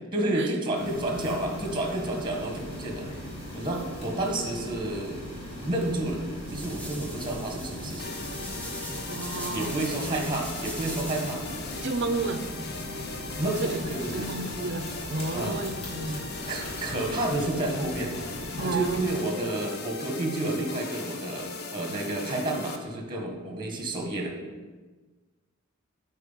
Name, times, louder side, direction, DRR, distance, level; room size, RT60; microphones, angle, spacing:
voice 1, 0.1-3.1 3.5-5.2 5.6-6.2 6.5-8.1 9.5-11.4 13.4-14.3 15.3-15.6 16.1-16.2 16.5-18.1 18.6-24.3, right 1 dB, 20° right, 1 dB, 1.6 m, -30 dB
sound 1, 0.7-19.1, equal, 30° left, 3.2 m, -39 dB
sound 2, 6.0-11.4, equal, 5° left, 1.2 m, -41 dB
sound 3, 8.0-22.8, left 4 dB, 50° left, 0.9 m, -39 dB
voice 2, 9.1-9.8 11.8-12.4 13.6-16.2 18.6-19.0, right 3 dB, 60° right, 9 dB, 0.7 m, -32 dB
9.7 x 4.4 x 7.2 m, 1.3 s
head